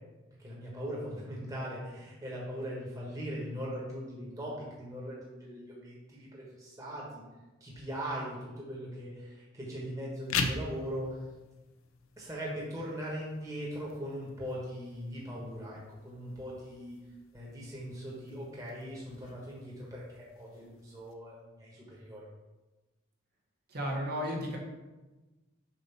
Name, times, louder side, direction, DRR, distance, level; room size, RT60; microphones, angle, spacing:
voice 1, 0.4-7.2 7.6-11.2 12.2-15.8 16.0-17.0 17.3-22.2, equal, 15° right, -5 dB, 1.3 m, -40 dB
sound 1, 10.1-21.1, left 5 dB, 80° left, 0.6 m, -43 dB
voice 2, 23.7-24.6, equal, 50° right, -1 dB, 1.4 m, -33 dB
7.3 x 2.8 x 5.7 m, 1.1 s
head